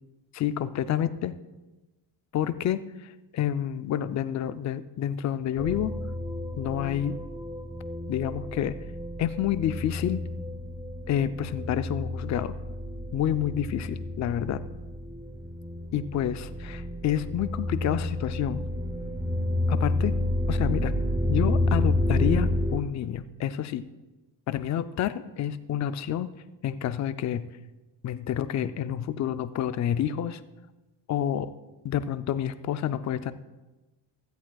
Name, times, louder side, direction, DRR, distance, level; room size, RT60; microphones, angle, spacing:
voice 1, 0.3-1.3 2.3-5.9 6.6-7.2 8.1-8.8 9.2-10.2 11.1-12.5 13.1-14.6 15.9-18.6 19.7-20.1 20.5-20.9 21.3-23.8 24.5-26.3 26.6-27.5 28.0-30.4 31.1-31.5 31.8-33.3, left 10 dB, 40° left, 12 dB, 0.4 m, -29 dB
sound 1, 5.6-22.8, left 1 dB, 5° right, 0.6 m, -30 dB
16.0 x 14.0 x 2.3 m, 1.1 s
cardioid pair, 170°, 46 cm